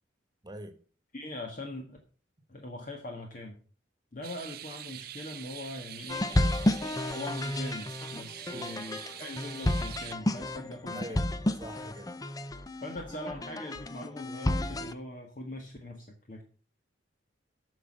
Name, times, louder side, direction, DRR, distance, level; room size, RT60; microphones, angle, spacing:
voice 1, 0.4-0.7 8.5-8.8 10.9-11.2 11.6-12.2, right 1 dB, 20° right, 8 dB, 1.5 m, -43 dB
voice 2, 1.1-2.0 2.5-3.6 4.1-6.3 7.1-11.3 12.8-16.4, left 1 dB, 45° left, 2 dB, 1.6 m, -41 dB
sound 1, 4.2-10.1, right 12 dB, 50° right, 0.6 m, -44 dB
sound 2, 6.1-14.9, left 1 dB, 20° left, 0.6 m, -31 dB
9.6 x 6.4 x 7.3 m, 0.41 s
head